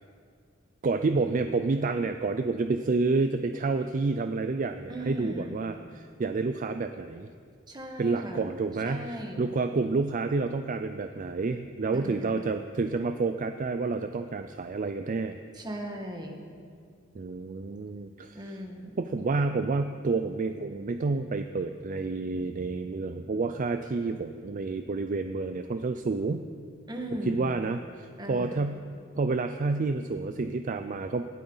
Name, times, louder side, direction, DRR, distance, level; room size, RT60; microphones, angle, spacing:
voice 1, 0.8-7.3 8.0-15.4 17.2-18.4 19.0-26.4 27.3-28.8 29.1-31.3, right 3 dB, 40° right, 8 dB, 0.4 m, -29 dB
voice 2, 4.9-5.6 7.7-9.5 11.9-12.6 15.5-16.4 18.3-19.0 26.9-27.6 28.2-28.7, equal, 20° right, 2 dB, 1.6 m, -38 dB
19.5 x 12.5 x 4.0 m, 2.2 s
head